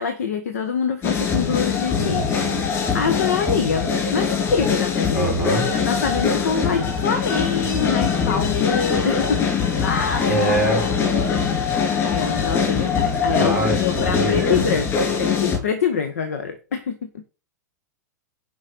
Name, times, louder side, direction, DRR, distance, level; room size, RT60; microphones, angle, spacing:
voice 1, 0.0-2.3 2.9-5.3 5.7-10.3 11.6-17.2, left 6 dB, 60° left, 9 dB, 1.2 m, -25 dB
sound 1, 1.0-15.6, left 6 dB, 30° left, 4.4 m, -22 dB
voice 2, 2.0-2.7 5.1-5.7 10.3-10.8 13.3-14.6, right 1 dB, 80° left, 0 dB, 5.7 m, -24 dB
9.5 x 5.6 x 5.8 m, 0.35 s
figure-of-eight pair, 100°, 9 cm